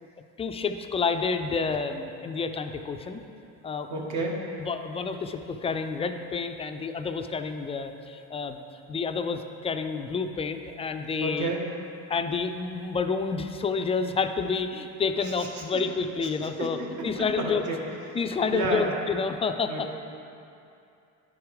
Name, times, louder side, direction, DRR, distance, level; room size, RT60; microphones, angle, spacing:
voice 1, 0.4-3.2 3.6-4.0 4.6-8.6 8.9-11.5 12.1-17.6 18.1-19.9, left 5 dB, 20° left, 7 dB, 0.3 m, -29 dB
voice 2, 3.9-4.4 11.2-11.6 15.2-15.6 16.4-17.9 18.5-18.9 19.7-19.9, right 2 dB, 60° right, -1 dB, 1.6 m, -31 dB
10.0 x 4.9 x 4.8 m, 2.6 s
cardioid pair, 125°, 33 cm